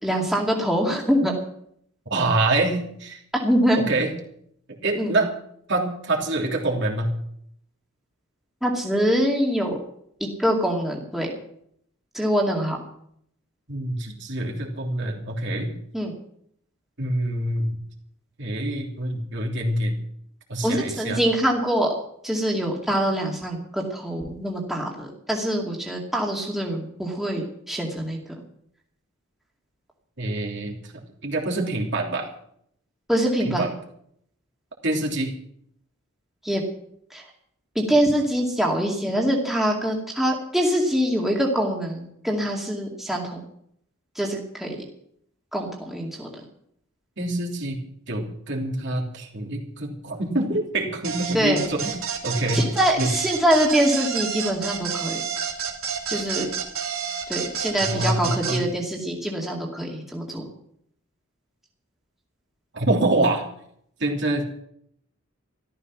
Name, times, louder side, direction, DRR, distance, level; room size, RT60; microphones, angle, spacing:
voice 1, 0.0-1.3 3.4-3.9 5.0-5.1 8.6-9.8 10.2-11.3 12.1-12.8 15.9-16.1 20.6-21.9 22.2-28.2 33.1-33.7 36.4-36.6 37.1-37.2 37.7-43.4 44.2-44.8 45.5-46.3 51.3-51.6 52.5-55.2 56.1-56.5 57.3-60.4, equal, ahead, -2 dB, 2.3 m, -24 dB
voice 2, 2.1-3.2 3.8-4.1 4.8-5.3 5.7-7.1 13.7-15.7 17.0-17.8 18.4-20.0 20.5-21.2 30.2-30.8 31.2-32.3 33.4-33.7 34.8-35.3 47.2-51.9 52.2-52.6 53.0-53.1 57.8-58.6 62.7-63.4 64.0-64.4, right 2 dB, 55° right, -1 dB, 3.1 m, -25 dB
sound 1, 51.0-58.6, right 7 dB, 90° right, 3.0 m, -29 dB
14.0 x 13.5 x 6.1 m, 0.69 s
head